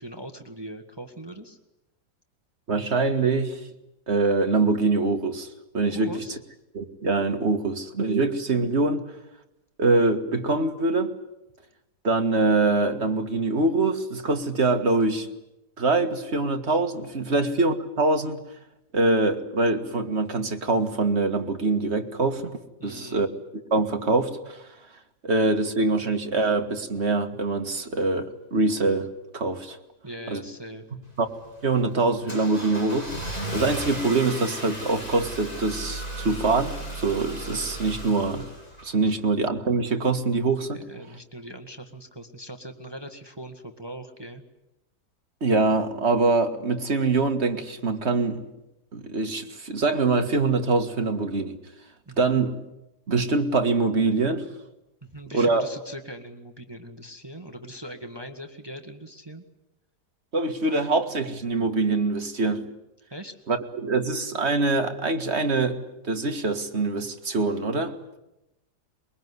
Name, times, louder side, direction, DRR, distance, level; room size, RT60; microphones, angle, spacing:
voice 1, 0.0-1.6 5.9-6.4 22.8-23.2 30.0-30.8 39.0-39.2 40.7-44.4 52.0-52.4 55.0-59.4 63.1-63.4, right 1 dB, 15° right, 1.5 m, -40 dB
voice 2, 2.7-3.6 4.1-5.5 5.7-6.1 6.7-9.0 9.8-11.1 12.0-15.3 15.8-18.4 18.9-23.3 23.5-24.6 25.2-29.1 29.3-29.8 30.3-30.4 31.2-31.3 31.6-33.1 33.5-36.7 37.0-38.5 38.8-40.8 45.4-48.4 48.9-51.5 52.2-52.6 53.1-54.5 55.3-55.7 60.3-62.6 63.5-68.2, right 3 dB, 40° right, 1.9 m, -24 dB
Car / Engine starting, 31.0-39.2, right 1 dB, 20° left, 4.1 m, -35 dB
23.5 x 22.5 x 9.7 m
omnidirectional pair, 1.8 m